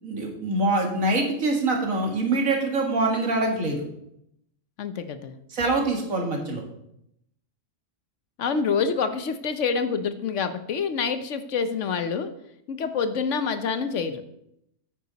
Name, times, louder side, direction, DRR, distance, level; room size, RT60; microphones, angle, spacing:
voice 1, 0.0-3.8 5.5-6.6, right 2 dB, 85° right, 1 dB, 2.3 m, -24 dB
voice 2, 4.8-5.3 8.4-12.3 12.7-14.2, left 5 dB, 65° left, 10 dB, 1.1 m, -27 dB
9.5 x 8.9 x 4.1 m, 0.77 s
omnidirectional pair, 1.4 m